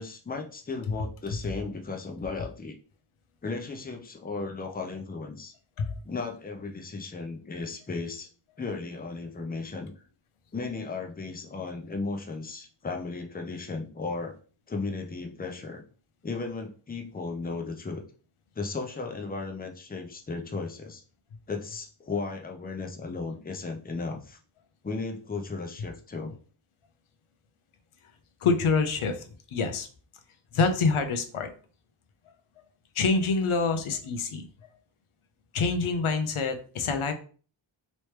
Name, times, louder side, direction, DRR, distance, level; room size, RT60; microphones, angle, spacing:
voice 1, 0.0-2.7 3.4-5.5 6.0-8.3 8.6-9.9 10.5-14.3 14.7-15.8 16.2-18.0 18.6-21.0 21.5-24.4 24.8-26.4, left 3 dB, 20° left, 3 dB, 0.6 m, -35 dB
voice 2, 28.4-29.2 29.5-29.9 30.5-31.5 33.0-34.4 35.5-37.1, left 4 dB, 85° left, 7 dB, 0.7 m, -26 dB
3.1 x 3.0 x 3.2 m, 0.40 s
wide cardioid pair, 80°, 49 cm